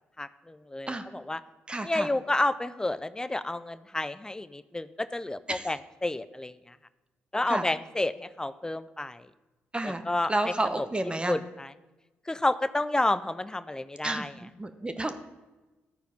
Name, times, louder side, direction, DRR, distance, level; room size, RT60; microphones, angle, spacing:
voice 1, 0.2-1.4 1.8-6.5 7.3-9.2 9.8-10.9 11.3-11.7 12.3-14.3, left 2 dB, 15° left, 14 dB, 0.5 m, -30 dB
voice 2, 1.7-2.1 5.5-5.7 7.5-7.6 9.7-11.4 14.0-15.2, right 2 dB, 20° right, 8 dB, 1.0 m, -31 dB
13.0 x 4.5 x 5.3 m, 1.1 s
hypercardioid pair, 45°, 5 cm